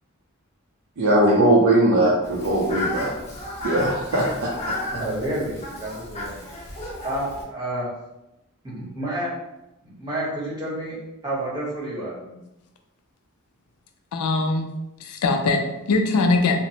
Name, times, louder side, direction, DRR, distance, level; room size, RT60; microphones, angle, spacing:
voice 1, 1.0-3.1 3.6-4.7, right 1 dB, 65° right, -5 dB, 0.5 m, -20 dB
Fowl, 2.2-7.4, left 1 dB, 30° left, 0.7 m, -33 dB
voice 2, 4.9-6.4 7.0-7.9 8.6-9.3 9.8-11.0 11.2-12.1, right 1 dB, 20° right, -7 dB, 0.9 m, -29 dB
voice 3, 14.1-14.7 15.0-16.6, left 3 dB, 90° left, 5 dB, 0.4 m, -21 dB
2.9 x 2.0 x 2.7 m, 0.94 s
head